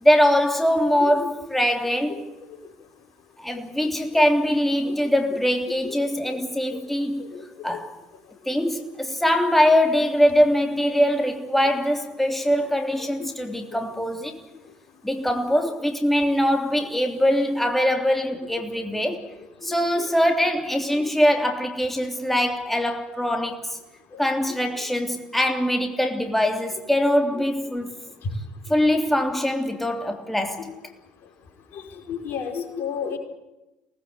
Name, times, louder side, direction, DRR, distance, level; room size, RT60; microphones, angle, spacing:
voice 1, 0.0-2.3 3.4-7.2 7.6-7.9 8.5-14.4 15.0-19.3 19.6-23.8 24.2-27.9 28.7-30.9, equal, 5° left, 3.3 m, -22 dB
voice 2, 1.0-1.3 4.8-4.9 5.3-5.4 5.8-6.0 6.2-6.4 6.7-6.8 7.3-7.4 19.6-20.1 24.1-24.2 27.3-27.4 28.9-29.0 31.7-33.2, left 7 dB, 55° left, 5.0 m, -32 dB
25.0 x 19.5 x 8.4 m
hypercardioid pair, 65°, 4 cm